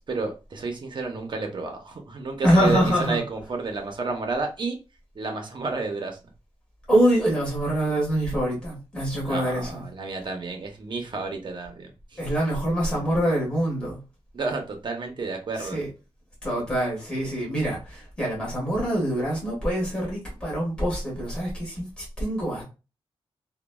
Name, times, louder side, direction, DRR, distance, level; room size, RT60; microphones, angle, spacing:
voice 1, 0.1-4.8 5.2-6.2 9.3-11.9 14.3-15.8, right 3 dB, 50° right, 0.6 m, -31 dB
voice 2, 2.4-3.2 6.9-9.8 12.2-14.0 15.6-15.9 16.4-22.6, equal, 10° left, 1.3 m, -25 dB
3.0 x 2.1 x 2.2 m
wide cardioid pair, 135°, 10 cm